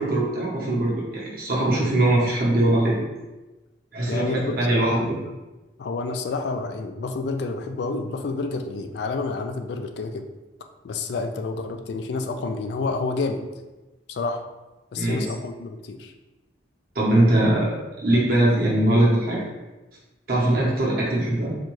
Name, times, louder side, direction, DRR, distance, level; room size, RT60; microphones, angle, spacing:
voice 1, 0.0-3.0 3.9-5.2 14.9-15.2 16.9-19.4 20.3-21.5, right 1 dB, 50° right, -5 dB, 1.0 m, -21 dB
voice 2, 4.1-5.1 5.8-10.3 10.8-13.4 14.1-14.4 14.9-16.1, left 3 dB, 65° left, 6 dB, 0.3 m, -29 dB
4.1 x 2.3 x 3.1 m, 1.1 s
head